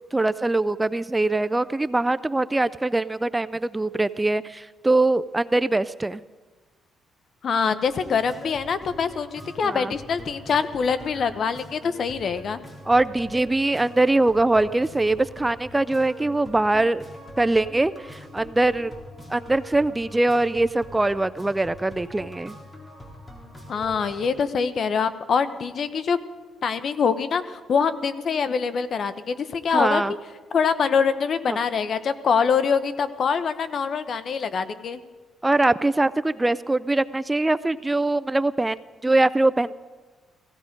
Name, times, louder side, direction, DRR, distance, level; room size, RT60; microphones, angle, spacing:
voice 1, 0.1-6.2 9.6-9.9 12.9-17.0 17.4-18.9 19.3-22.6 29.7-30.1 31.5-31.6 35.4-39.7, right 2 dB, 15° right, 14 dB, 0.4 m, -22 dB
voice 2, 7.4-12.6 23.7-26.2 26.6-30.0 30.5-35.0, left 6 dB, 55° left, 13 dB, 0.9 m, -24 dB
sound 1, 7.8-24.3, equal, 25° left, 3.6 m, -43 dB
17.0 x 15.0 x 5.2 m, 1.4 s
cardioid pair, 90°, 0 cm